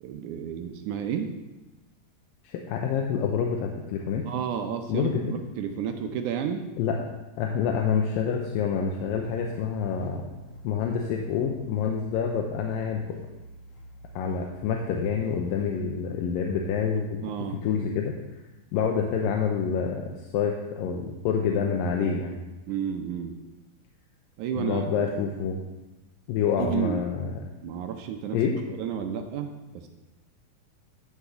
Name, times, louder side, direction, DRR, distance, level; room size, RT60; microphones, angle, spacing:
voice 1, 0.0-1.3 4.3-6.7 17.2-17.6 22.7-23.3 24.4-25.1 26.4-27.0 27.6-28.4 28.7-29.9, right 8 dB, 75° right, 5 dB, 1.9 m, -31 dB
voice 2, 2.4-4.2 4.9-5.2 6.8-7.0 7.4-10.3 10.6-13.0 14.2-17.2 17.6-18.1 18.7-22.3 24.6-25.6 26.3-27.4 28.3-28.6, left 6 dB, 80° left, 1 dB, 2.4 m, -27 dB
sound 1, 8.9-15.8, right 1 dB, 55° left, 2.7 m, -48 dB
11.5 x 4.9 x 6.7 m, 1.1 s
omnidirectional pair, 4.1 m